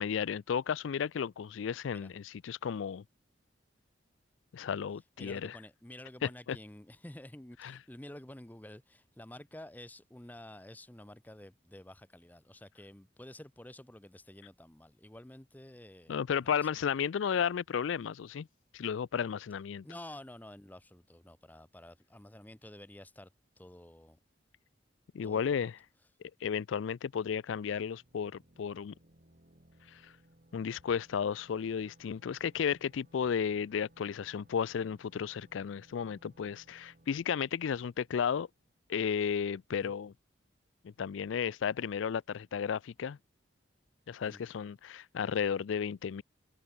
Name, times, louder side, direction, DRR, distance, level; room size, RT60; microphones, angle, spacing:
voice 1, 0.0-3.0 4.5-5.5 6.5-6.6 7.6-7.7 16.1-18.5 18.7-19.8 25.1-25.7 26.4-28.9 30.5-38.5 38.9-40.1 40.8-43.2 44.1-46.2, left 7 dB, 85° left, 0.4 m, -33 dB
voice 2, 5.2-16.7 19.8-23.3 23.6-24.2 25.2-25.4 39.8-39.9 44.2-44.4, left 1 dB, 10° left, 0.7 m, -50 dB
sound 1, 27.7-39.2, right 1 dB, 45° right, 2.3 m, -64 dB
head